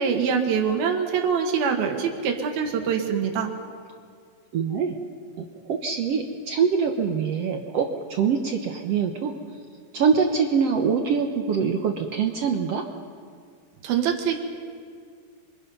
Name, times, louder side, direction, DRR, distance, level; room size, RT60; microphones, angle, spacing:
voice 1, 0.0-3.5 13.8-14.4, right 6 dB, 85° right, 3 dB, 3.3 m, -24 dB
voice 2, 4.5-4.9 5.6-9.3 9.9-12.8, right 6 dB, 65° right, 3 dB, 1.5 m, -24 dB
28.0 x 24.5 x 5.5 m, 2.1 s
omnidirectional pair, 4.2 m